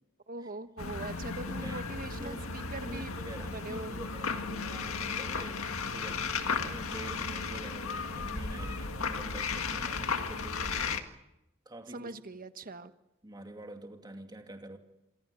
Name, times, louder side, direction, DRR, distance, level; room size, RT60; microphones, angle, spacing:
voice 1, 0.3-3.2 3.5-4.0 11.9-12.9, right 2 dB, 45° right, 10 dB, 1.3 m, -42 dB
sound 1, 0.8-11.0, left 4 dB, 80° left, 1.9 m, -35 dB
voice 2, 1.4-10.8 11.7-12.1 13.2-14.8, right 1 dB, 20° right, 4 dB, 2.5 m, -47 dB
26.5 x 24.0 x 7.0 m, 0.93 s
head